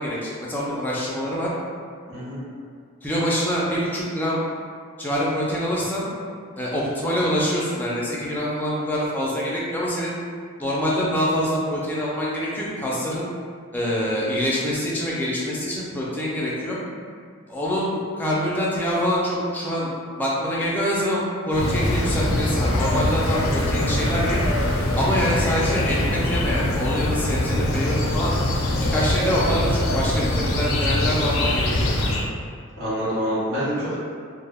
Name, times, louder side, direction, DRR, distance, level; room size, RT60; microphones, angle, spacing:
voice 1, 0.0-1.5 3.0-4.4 5.0-6.1 6.6-10.1 10.6-13.3 13.7-16.8 17.5-19.9 20.2-24.4 25.0-28.3 28.9-32.1, equal, 10° left, -6 dB, 0.3 m, -25 dB
sound 1, 21.5-32.3, left 1 dB, 80° left, 0.4 m, -23 dB
voice 2, 32.8-34.0, equal, 80° right, -10 dB, 1.0 m, -26 dB
2.1 x 2.1 x 3.3 m, 2.1 s
head